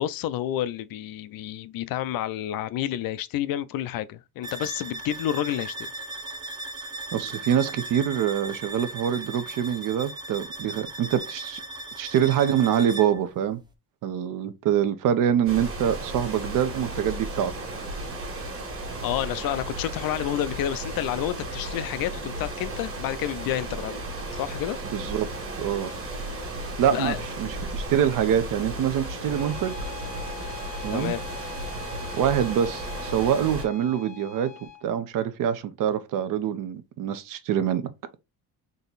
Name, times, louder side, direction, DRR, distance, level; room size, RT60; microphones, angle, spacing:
voice 1, 0.0-5.7 19.0-24.0 24.3-24.8 26.9-27.2 30.9-31.2, left 12 dB, 60° left, 0.5 m, -29 dB
sound 1, 4.4-13.2, right 2 dB, 10° right, 0.6 m, -38 dB
voice 2, 7.1-11.6 12.0-13.6 14.0-17.5 24.9-25.3 25.6-25.9 26.8-29.8 30.8-31.1 32.1-37.9, right 9 dB, 55° right, 0.6 m, -25 dB
sound 2, 15.5-33.7, right 1 dB, 35° right, 1.5 m, -34 dB
Bowed string instrument, 29.3-34.9, left 11 dB, 75° left, 1.2 m, -43 dB
3.8 x 2.9 x 3.9 m
cardioid pair, 145°, 40 cm